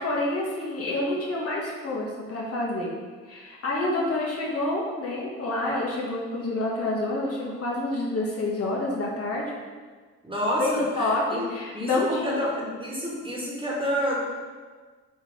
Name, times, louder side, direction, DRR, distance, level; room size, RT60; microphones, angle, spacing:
voice 1, 0.0-2.9 3.2-9.4 10.6-12.5, left 2 dB, 50° left, -4 dB, 1.8 m, -28 dB
voice 2, 10.2-11.5 11.7-14.2, equal, 15° right, -4 dB, 1.9 m, -28 dB
7.2 x 3.4 x 5.0 m, 1.5 s
cardioid pair, 90°, 30 cm